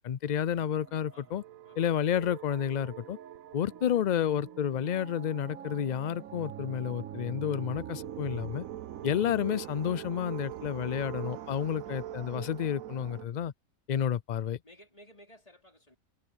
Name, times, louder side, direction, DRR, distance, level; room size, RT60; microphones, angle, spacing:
voice 1, 0.0-1.4 1.8-3.2 3.5-8.6 9.0-13.5 13.9-14.6, left 9 dB, 85° left, 0.4 m, -30 dB
sound 1, 0.7-13.3, right 11 dB, 90° right, 1.2 m, -43 dB
voice 2, 14.6-16.0, equal, 25° left, 3.7 m, -57 dB
omnidirectional pair, 1.4 m